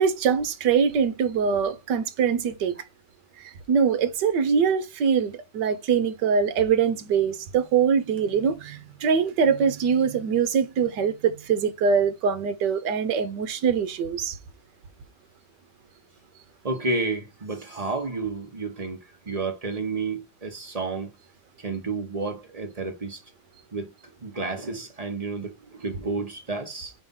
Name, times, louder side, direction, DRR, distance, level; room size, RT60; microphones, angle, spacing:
voice 1, 0.0-2.7 3.7-14.4, right 6 dB, 65° right, 1.4 m, -23 dB
voice 2, 16.6-19.0 19.3-21.1 21.6-23.2 23.7-23.9 24.2-26.9, right 3 dB, 25° right, 1.0 m, -31 dB
5.2 x 3.4 x 5.4 m
omnidirectional pair, 2.1 m